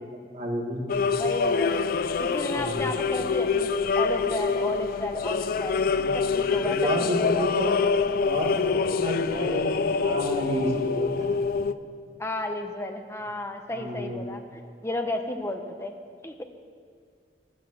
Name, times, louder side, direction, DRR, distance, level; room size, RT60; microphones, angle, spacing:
voice 1, 0.3-0.9 2.5-2.8 4.5-4.6 5.9-6.1 6.6-7.8 8.2-11.4 13.7-14.2, equal, 40° right, -1 dB, 2.0 m, -31 dB
sound 1, 0.9-11.7, left 5 dB, 55° left, 0.4 m, -26 dB
voice 2, 1.2-3.7 3.9-5.8 6.1-7.5 12.2-15.9 16.2-16.4, left 1 dB, 15° left, 5 dB, 0.8 m, -33 dB
12.0 x 9.5 x 7.2 m, 2.1 s
head